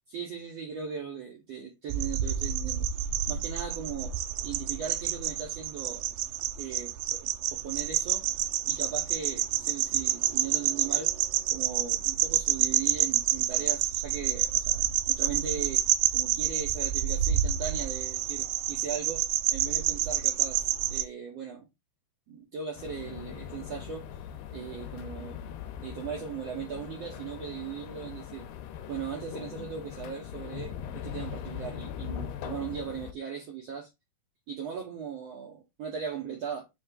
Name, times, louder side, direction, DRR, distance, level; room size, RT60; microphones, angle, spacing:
voice 1, 0.1-2.9 3.3-4.1 4.4-6.0 6.6-8.3 8.7-11.1 11.5-15.8 16.1-21.7 22.3-24.1 24.5-25.4 25.8-28.5 28.9-33.9 34.5-36.6, right 7 dB, 70° right, 1.5 m, -38 dB
sound 1, 1.9-21.0, right 11 dB, 85° right, 1.9 m, -28 dB
sound 2, 22.8-33.1, left 9 dB, 90° left, 2.7 m, -40 dB
7.6 x 3.4 x 3.7 m
omnidirectional pair, 4.5 m